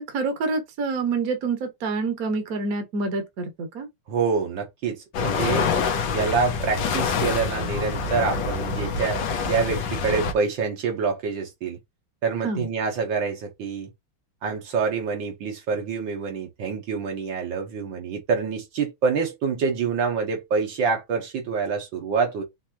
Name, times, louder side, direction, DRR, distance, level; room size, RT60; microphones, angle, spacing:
voice 1, 0.0-3.9 12.4-12.7, right 4 dB, 50° right, 1.5 m, -27 dB
voice 2, 4.1-5.7 6.1-11.8 12.2-13.9 14.4-22.4, right 5 dB, 70° right, 1.8 m, -26 dB
sound 1, 5.1-10.3, left 5 dB, 70° left, 1.6 m, -26 dB
6.0 x 2.7 x 2.9 m
omnidirectional pair, 2.2 m